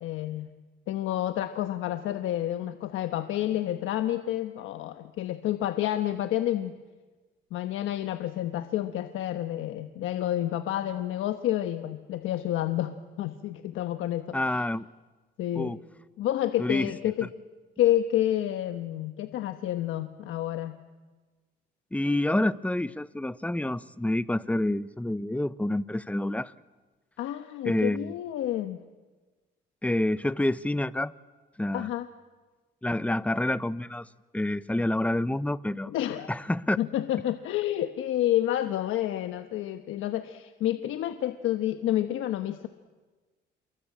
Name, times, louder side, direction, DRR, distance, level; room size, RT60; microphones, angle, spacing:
voice 1, 0.0-0.5 0.9-6.7 7.5-14.4 15.4-15.7 16.2-17.3 17.8-20.8 27.2-28.8 31.7-32.1 35.9-36.3 36.8-42.7, left 12 dB, 90° left, 8 dB, 1.2 m, -29 dB
voice 2, 14.3-14.9 15.5-15.8 16.6-16.9 17.2-17.3 21.9-26.5 27.6-28.1 29.8-31.1 31.6-31.9 32.8-35.9 36.3-36.8, left 1 dB, 5° left, 16 dB, 0.9 m, -28 dB
29.0 x 22.5 x 8.6 m, 1.3 s
cardioid pair, 90°, 20 cm